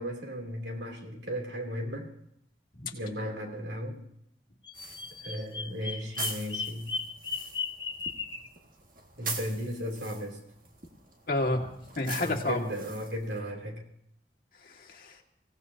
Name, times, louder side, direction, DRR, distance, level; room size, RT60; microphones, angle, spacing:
voice 1, 0.0-2.1 2.9-4.0 5.2-6.9 9.2-10.4 12.2-13.8, equal, 85° right, 1 dB, 3.1 m, -35 dB
Bird vocalization bird call bird song, 4.6-8.5, left 5 dB, 25° left, 0.8 m, -36 dB
sound 1, 4.7-13.4, right 4 dB, 50° right, 1.9 m, -43 dB
voice 2, 11.3-12.6 14.6-15.2, left 2 dB, 55° left, 1 dB, 2.0 m, -30 dB
25.0 x 16.5 x 2.8 m, 0.74 s
head